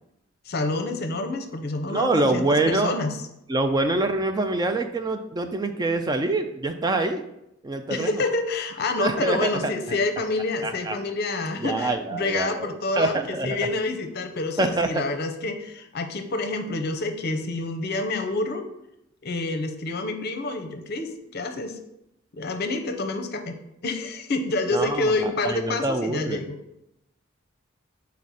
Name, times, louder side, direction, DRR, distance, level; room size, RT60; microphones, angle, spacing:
voice 1, 0.5-3.2 7.9-18.6 19.2-21.8 22.3-23.6 23.8-26.6, left 2 dB, 50° left, 7 dB, 0.7 m, -28 dB
voice 2, 1.9-2.9 3.5-7.2 7.6-8.2 9.0-10.2 10.6-11.0 11.6-13.6 14.6-15.0 24.7-26.4, right 2 dB, 20° right, 7 dB, 0.3 m, -25 dB
6.2 x 4.2 x 4.1 m, 0.84 s
head